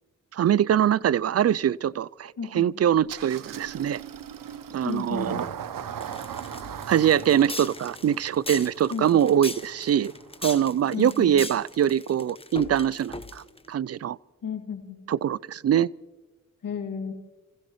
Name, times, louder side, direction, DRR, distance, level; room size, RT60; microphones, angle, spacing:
voice 1, 0.3-4.0 4.7-5.5 6.9-10.1 10.4-14.2 15.1-15.9, right 10 dB, 50° right, 0.4 m, -23 dB
voice 2, 2.4-2.7 4.8-5.5 8.9-9.2 10.9-11.3 14.4-15.0 16.6-17.1, left 6 dB, 70° left, 2.4 m, -33 dB
Engine starting, 3.1-10.4, right 9 dB, 80° right, 0.8 m, -39 dB
sound 1, 6.0-13.7, left 2 dB, 15° left, 1.1 m, -39 dB
30.0 x 15.5 x 3.1 m
cardioid pair, 50°, 33 cm